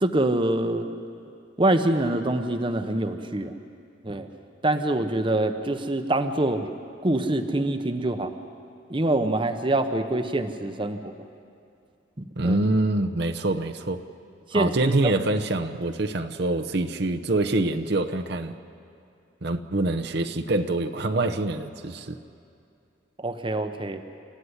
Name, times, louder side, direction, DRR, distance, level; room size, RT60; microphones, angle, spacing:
voice 1, 0.0-0.9 1.6-3.6 4.0-4.3 4.6-6.7 7.0-8.3 8.9-11.1 12.4-12.6 14.5-15.2 23.2-24.0, right 1 dB, 25° right, 7 dB, 0.9 m, -25 dB
voice 2, 12.4-14.0 14.5-18.5 19.4-22.2, right 2 dB, 60° right, 5 dB, 0.9 m, -25 dB
28.5 x 14.5 x 9.8 m, 2.4 s
head